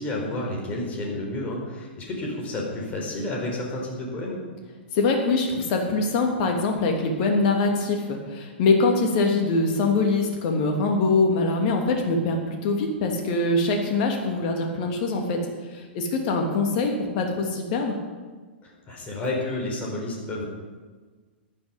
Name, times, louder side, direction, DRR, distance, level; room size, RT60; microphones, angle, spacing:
voice 1, 0.0-4.4 18.6-20.4, left 1 dB, 25° left, -1 dB, 4.5 m, -30 dB
voice 2, 4.9-15.4 15.7-18.0, left 3 dB, 40° left, 2 dB, 2.9 m, -23 dB
14.5 x 11.5 x 5.4 m, 1.4 s
figure-of-eight pair, 105°, 6 cm